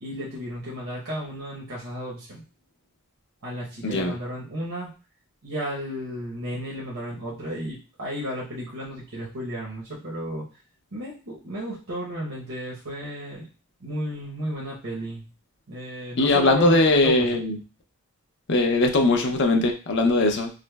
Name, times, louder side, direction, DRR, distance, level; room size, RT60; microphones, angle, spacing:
voice 1, 0.0-2.4 3.4-4.9 5.4-10.4 10.9-13.5 13.8-15.2 15.7-17.4, equal, 65° right, -5 dB, 0.8 m, -33 dB
voice 2, 16.2-17.6 18.5-20.5, left 2 dB, 55° left, 4 dB, 0.6 m, -20 dB
4.8 x 2.1 x 2.2 m, 0.34 s
head